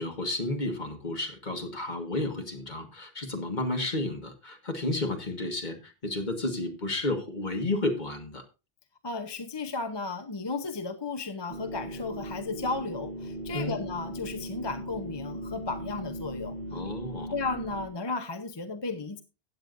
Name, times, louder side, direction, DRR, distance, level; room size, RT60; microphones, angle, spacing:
voice 1, 0.0-8.4 13.5-13.8 16.7-17.3, left 2 dB, 45° left, 5 dB, 1.7 m, -32 dB
voice 2, 9.0-16.5 16.8-17.0 17.3-19.2, left 3 dB, 30° left, 8 dB, 0.7 m, -34 dB
sound 1, 11.5-17.9, right 1 dB, 90° right, 3.0 m, -38 dB
15.5 x 8.7 x 2.6 m, 0.29 s
omnidirectional pair, 1.0 m